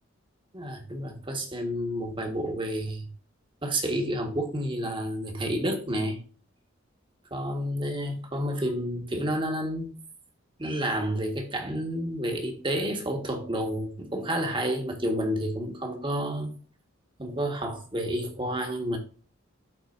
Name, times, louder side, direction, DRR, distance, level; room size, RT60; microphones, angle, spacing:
voice 1, 0.5-3.1 3.6-6.2 7.3-9.9 10.6-16.5 17.2-19.0, equal, 25° right, 1.5 m, -30 dB
12.5 x 4.3 x 2.6 m
head